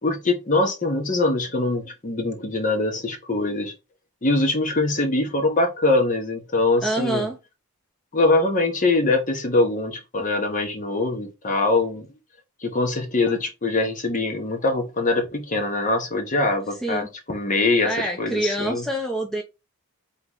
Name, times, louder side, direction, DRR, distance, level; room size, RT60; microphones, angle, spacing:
voice 1, 0.0-3.7 4.2-7.3 8.1-12.1 12.6-18.8, left 2 dB, 35° left, 1.0 m, -23 dB
voice 2, 6.8-7.4 16.8-17.1 17.8-19.4, right 1 dB, ahead, 0.6 m, -26 dB
3.9 x 3.7 x 3.0 m
head